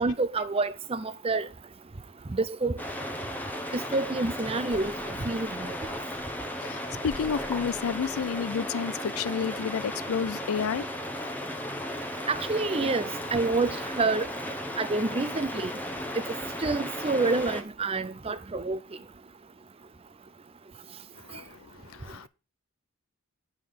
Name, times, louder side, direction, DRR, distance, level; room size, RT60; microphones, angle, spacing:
voice 1, 0.0-1.5 2.3-2.8 3.7-5.8 12.3-14.3 14.8-15.7 16.1-16.2 16.6-18.8, right 3 dB, 25° right, 0.5 m, -28 dB
sound 1, 2.8-17.6, left 1 dB, 10° left, 0.9 m, -35 dB
sound 2, 4.7-6.5 6.8-6.9 7.1-8.6, right 1 dB, 55° right, 1.5 m, -50 dB
voice 2, 6.6-10.9 21.2-22.3, left 6 dB, 70° left, 0.4 m, -31 dB
9.6 x 5.8 x 5.1 m
head